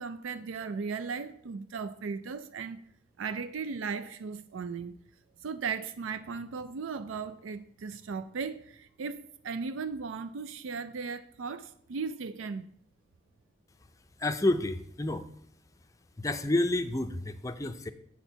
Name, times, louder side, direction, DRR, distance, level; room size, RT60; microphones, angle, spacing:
voice 1, 0.0-2.8 3.2-4.9 5.4-12.7, right 5 dB, 90° right, 0.4 m, -37 dB
voice 2, 14.2-15.3 16.2-17.9, left 2 dB, 15° left, 0.4 m, -29 dB
8.2 x 4.4 x 6.8 m
head